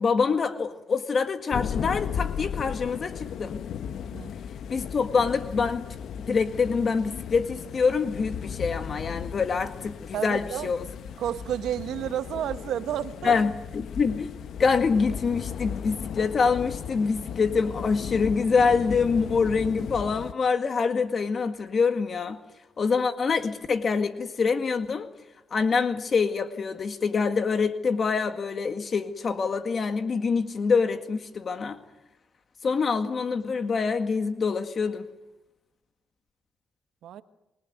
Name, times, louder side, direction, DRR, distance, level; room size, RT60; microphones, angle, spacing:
voice 1, 0.0-3.6 4.7-5.8 6.2-10.8 13.2-14.3 14.6-22.4 22.8-25.1 25.5-31.8 32.6-35.1, left 5 dB, 45° left, 8 dB, 2.0 m, -25 dB
sound 1, 1.5-20.3, left 8 dB, 70° left, 1.0 m, -36 dB
voice 2, 10.1-10.7 11.2-13.3 37.0-37.2, right 10 dB, 75° right, 11 dB, 1.3 m, -31 dB
26.5 x 20.5 x 9.5 m, 0.97 s
cardioid pair, 90°, 0 cm